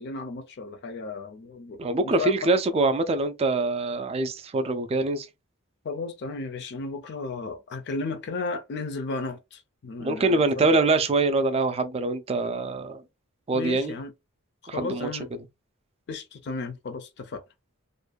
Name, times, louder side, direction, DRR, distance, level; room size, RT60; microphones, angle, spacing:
voice 1, 0.0-2.3 5.8-10.7 13.5-14.1 14.7-15.3 16.1-17.4, left 3 dB, 50° left, 0.4 m, -34 dB
voice 2, 1.8-5.3 10.0-13.0 13.5-13.9 14.7-15.1, right 3 dB, 30° right, 0.3 m, -24 dB
2.5 x 2.1 x 2.3 m
head